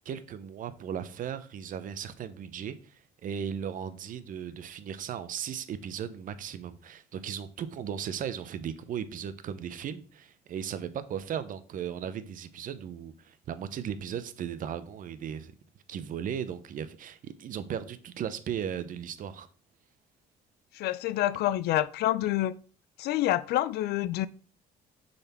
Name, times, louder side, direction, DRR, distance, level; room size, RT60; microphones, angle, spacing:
voice 1, 0.0-15.5 15.9-19.5, right 8 dB, 55° right, 0.7 m, -36 dB
voice 2, 20.7-22.5 23.0-24.3, left 14 dB, 70° left, 0.4 m, -27 dB
6.7 x 4.1 x 4.3 m
cardioid pair, 110°, 17 cm